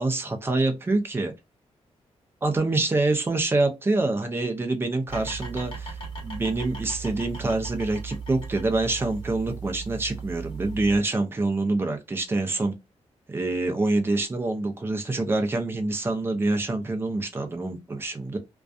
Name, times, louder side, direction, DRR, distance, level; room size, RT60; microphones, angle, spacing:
voice 1, 0.0-1.3 2.4-6.0 6.2-12.7 13.3-18.4, right 2 dB, 20° right, 0.5 m, -26 dB
sound 1, 5.1-11.0, right 5 dB, 50° left, 1.1 m, -37 dB
2.5 x 2.2 x 2.3 m
wide cardioid pair, 145°, 11 cm